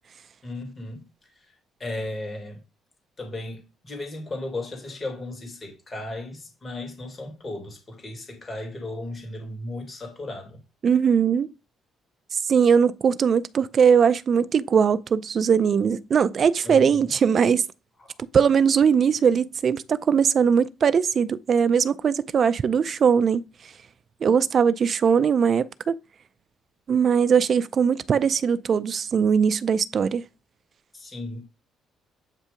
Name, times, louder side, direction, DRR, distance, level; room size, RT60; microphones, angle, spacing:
voice 1, 0.4-1.5 1.8-2.6 3.2-10.6 16.6-17.1 18.0-18.1 30.9-31.5, left 2 dB, 25° left, 2.0 m, -35 dB
voice 2, 10.8-11.5 12.3-17.6 18.3-23.5 24.2-25.9 26.9-30.2, right 7 dB, 45° right, 0.4 m, -20 dB
8.2 x 2.7 x 5.0 m
cardioid pair, 110°, 0 cm